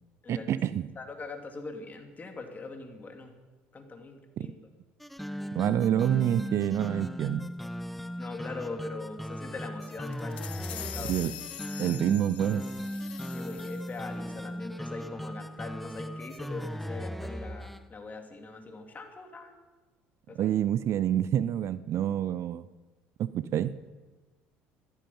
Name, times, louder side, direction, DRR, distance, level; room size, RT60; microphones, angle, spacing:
voice 1, 0.3-0.9 4.4-4.5 5.5-7.5 11.1-11.3 11.8-12.6 20.4-22.7 23.2-23.8, right 10 dB, 55° right, 16 dB, 0.6 m, -27 dB
voice 2, 1.0-3.3 3.7-4.5 8.2-11.2 13.3-19.5 20.3-20.5, left 3 dB, 30° left, 4 dB, 2.8 m, -41 dB
sound 1, 5.0-17.8, equal, ahead, 0.8 m, -37 dB
sound 2, 10.1-14.1, left 12 dB, 90° left, 1.1 m, -43 dB
15.0 x 13.0 x 5.6 m, 1.2 s
hypercardioid pair, 75°, 6 cm